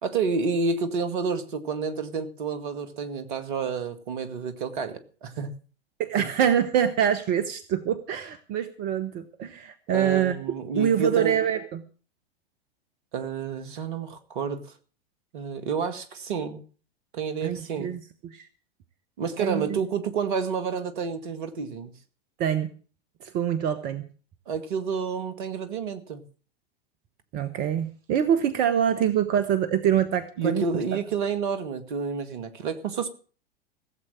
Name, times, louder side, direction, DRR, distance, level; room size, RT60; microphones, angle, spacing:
voice 1, 0.0-5.5 6.2-6.3 9.9-11.4 13.1-14.7 15.3-16.6 17.1-17.9 19.2-21.9 24.5-26.2 30.4-33.1, right 5 dB, 55° right, 10 dB, 2.0 m, -29 dB
voice 2, 6.0-10.3 10.7-11.8 17.4-18.5 19.4-19.8 22.4-22.7 23.2-24.0 27.3-30.7, right 9 dB, 30° right, 11 dB, 1.1 m, -25 dB
16.0 x 7.9 x 7.5 m, 0.40 s
figure-of-eight pair, 95°, 31 cm